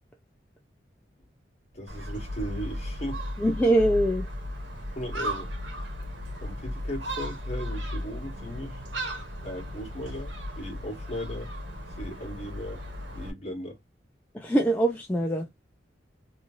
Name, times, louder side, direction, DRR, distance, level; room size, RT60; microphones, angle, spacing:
voice 1, 1.7-3.2 4.9-5.5 6.4-8.8 9.4-10.3 10.6-11.5 12.0-12.8 13.1-13.8, equal, 35° left, 1.5 m, -37 dB
Gull seagull, 1.9-13.3, equal, 75° right, 1.1 m, -35 dB
voice 2, 3.4-4.3 14.3-15.5, right 1 dB, 10° left, 0.4 m, -23 dB
3.1 x 2.7 x 2.4 m
head